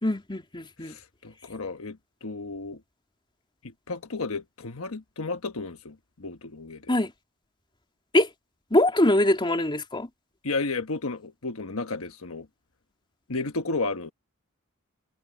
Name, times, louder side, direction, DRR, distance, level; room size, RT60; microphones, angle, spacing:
voice 1, 0.0-0.9 6.9-7.1 8.1-8.3 8.7-10.1, left 1 dB, 25° left, 3.1 m, -23 dB
voice 2, 0.8-2.8 3.6-6.9 10.4-12.5 13.3-14.1, left 3 dB, 70° left, 1.3 m, -33 dB
head